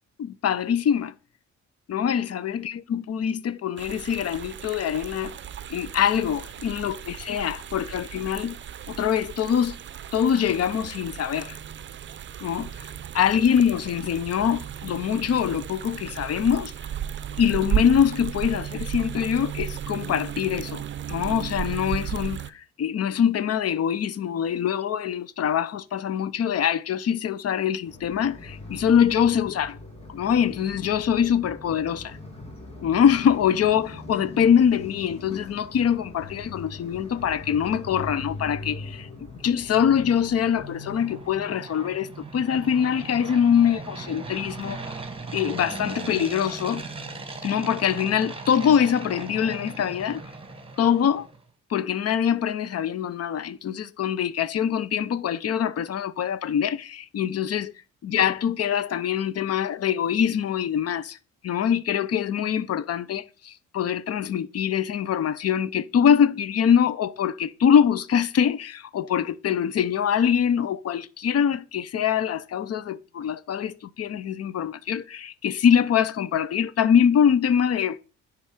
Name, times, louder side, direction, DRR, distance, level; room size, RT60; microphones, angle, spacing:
voice 1, 0.2-1.1 1.9-5.3 5.7-8.6 8.9-9.8 10.1-11.6 12.4-12.7 13.1-16.7 17.4-20.8 21.1-29.8 30.1-32.2 32.8-39.1 39.4-44.8 45.3-46.8 47.4-50.2 50.8-51.3 51.7-57.7 58.0-61.2 61.4-78.0, left 8 dB, 55° left, 0.7 m, -24 dB
sound 1, 3.8-22.5, right 10 dB, 40° right, 0.5 m, -34 dB
sound 2, 27.8-41.4, left 3 dB, 20° left, 2.9 m, -41 dB
sound 3, 39.1-51.4, right 3 dB, 20° right, 1.5 m, -39 dB
9.9 x 3.8 x 6.0 m
cardioid pair, 90°, 30 cm